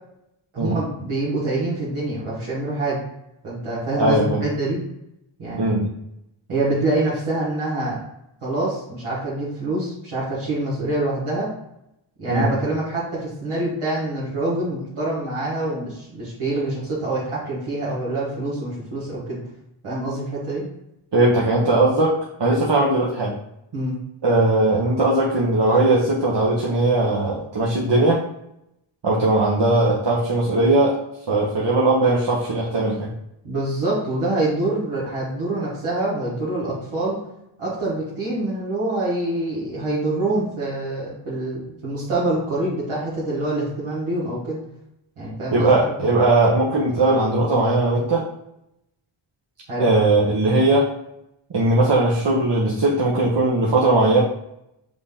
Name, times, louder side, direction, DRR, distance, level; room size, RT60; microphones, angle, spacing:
voice 1, 0.5-3.0 3.4-4.8 5.4-5.7 6.5-8.0 8.4-11.5 12.2-19.4 19.8-20.6 23.7-23.9 33.4-37.2 37.6-44.6 45.2-45.7 49.7-49.9, right 2 dB, 80° right, -9 dB, 1.6 m, -25 dB
voice 2, 4.0-4.4 5.6-5.9 12.3-12.5 21.1-23.3 24.2-28.2 29.0-31.0 31.3-33.1 45.5-48.3 49.8-50.9 51.5-54.2, right 2 dB, 55° right, -4 dB, 1.0 m, -19 dB
5.0 x 2.7 x 3.5 m, 0.81 s
cardioid pair, 45°, 50 cm